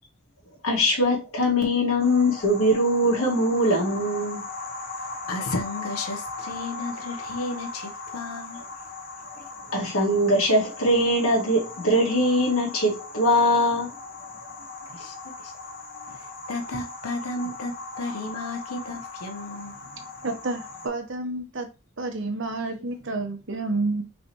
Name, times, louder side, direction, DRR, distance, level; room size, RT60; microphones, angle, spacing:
voice 1, 0.6-4.4 9.7-13.9, equal, 70° left, 2.0 m, -22 dB
sound 1, 2.0-20.9, left 3 dB, 40° left, 1.2 m, -38 dB
voice 2, 5.3-8.6 14.9-15.5 15.9-19.8, left 2 dB, 90° left, 0.8 m, -33 dB
voice 3, 19.8-21.7 22.0-24.0, right 2 dB, 55° right, 0.9 m, -30 dB
5.4 x 3.3 x 3.0 m
head